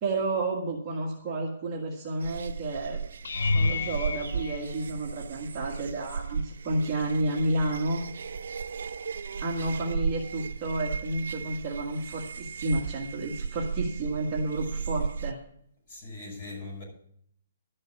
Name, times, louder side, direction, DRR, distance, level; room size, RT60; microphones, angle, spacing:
voice 1, 0.0-3.0 3.5-8.1 9.4-15.4, right 2 dB, 20° right, 1.6 m, -31 dB
sound 1, 2.2-15.3, right 5 dB, 65° right, 0.6 m, -36 dB
sound 2, 3.2-5.5 6.2-6.7 7.0-7.2 11.5-11.6, left 3 dB, 75° left, 0.6 m, -30 dB
voice 2, 15.9-16.8, left 3 dB, 25° left, 6.1 m, -40 dB
12.0 x 6.7 x 8.2 m
hypercardioid pair, 175°, 0 cm